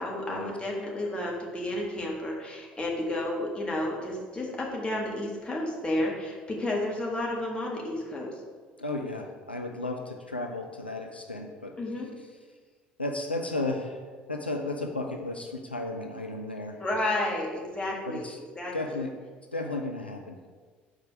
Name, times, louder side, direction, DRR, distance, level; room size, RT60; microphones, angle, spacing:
voice 1, 0.0-8.3 11.8-12.1 16.8-19.0, left 1 dB, 20° left, -2 dB, 1.7 m, -31 dB
voice 2, 8.8-11.7 13.0-16.8 18.1-18.4 18.7-19.1 19.5-20.5, left 2 dB, 90° left, 3 dB, 0.4 m, -34 dB
4.8 x 4.6 x 6.0 m, 1.5 s
figure-of-eight pair, 60°, 5 cm